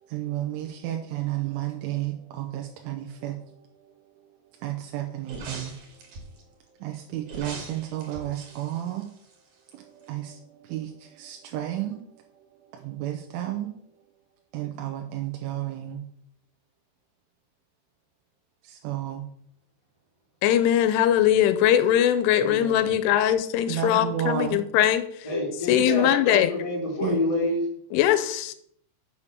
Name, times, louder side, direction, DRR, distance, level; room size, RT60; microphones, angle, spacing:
voice 1, 0.0-3.6 3.8-3.9 4.2-4.3 4.6-6.0 6.8-9.1 9.7-12.2 12.7-13.7 14.5-16.1 18.6-19.3 23.7-24.6 27.0-27.2, right 12 dB, 85° right, 3 dB, 3.2 m, -32 dB
sound 1, 5.2-6.4 7.2-9.7 10.0-10.1, right 3 dB, 50° right, 2.9 m, -41 dB
voice 2, 20.4-25.1 25.7-26.5 27.9-28.5, left 11 dB, 85° left, 11 dB, 3.1 m, -21 dB
voice 3, 22.3-23.0 25.2-27.7, left 1 dB, 10° left, -1 dB, 1.7 m, -28 dB
7.3 x 6.7 x 6.8 m, 0.68 s
omnidirectional pair, 5.7 m